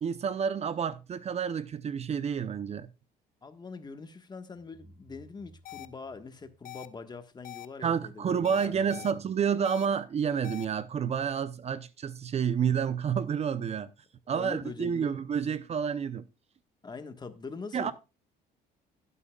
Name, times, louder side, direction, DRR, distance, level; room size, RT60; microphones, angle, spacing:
voice 1, 0.0-2.9 7.8-13.9 14.3-16.2 17.7-17.9, right 7 dB, 40° right, 0.6 m, -29 dB
voice 2, 3.4-9.1 14.3-15.2 16.8-17.9, left 4 dB, 25° left, 1.4 m, -43 dB
sound 1, 4.5-7.4, right 1 dB, 25° right, 3.1 m, -58 dB
sound 2, 5.7-5.9 6.7-6.9 7.4-7.7 8.5-9.1 9.7-9.9 10.4-10.7, left 15 dB, 55° left, 0.9 m, -43 dB
16.5 x 8.4 x 2.3 m
cardioid pair, 110°, 17 cm